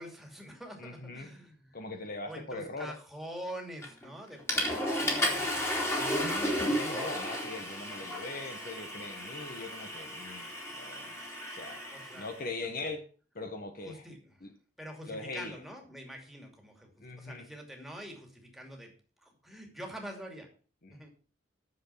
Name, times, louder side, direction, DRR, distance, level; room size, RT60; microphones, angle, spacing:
voice 1, 0.0-1.8 2.2-5.6 7.3-7.4 11.9-12.3 13.8-14.4 14.8-16.9 17.2-19.0 19.2-20.5 20.9-21.1, equal, ahead, 2 dB, 2.5 m, -45 dB
voice 2, 0.8-1.3 1.7-2.9 6.0-11.1 11.5-11.8 12.2-13.0 13.3-14.1 14.4-14.5 15.1-15.6 17.0-17.5 20.8-21.1, left 3 dB, 50° left, 6 dB, 1.3 m, -41 dB
Water / Toilet flush, 3.8-4.1 4.5-12.4, left 1 dB, 15° left, 2.9 m, -33 dB
10.5 x 7.0 x 5.7 m, 0.38 s
head